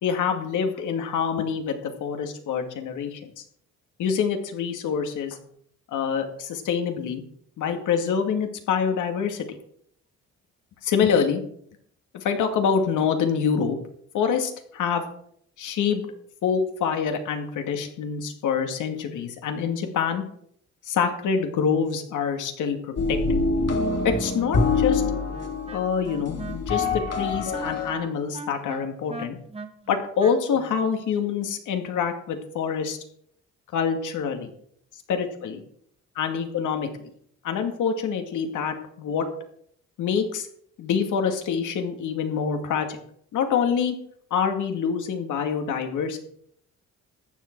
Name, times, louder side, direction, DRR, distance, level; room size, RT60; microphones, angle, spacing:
voice 1, 0.0-3.4 4.0-5.4 5.9-7.2 7.6-9.6 10.8-11.4 12.1-13.8 14.1-15.0 15.6-16.1 16.4-20.2 20.8-23.2 24.0-25.0 25.7-29.4 29.9-33.0 33.7-34.5 35.1-35.6 36.2-37.1 37.4-39.3 40.0-40.5 40.8-43.0 43.3-43.9 44.3-46.2, left 6 dB, 80° left, 5 dB, 2.3 m, -26 dB
sound 1, 23.0-27.9, left 3 dB, 55° left, 3.6 m, -25 dB
Wind instrument woodwind instrument, 25.3-30.9, right 3 dB, 20° right, 1.5 m, -39 dB
14.5 x 10.0 x 4.7 m, 0.66 s
cardioid pair, 90°, 30 cm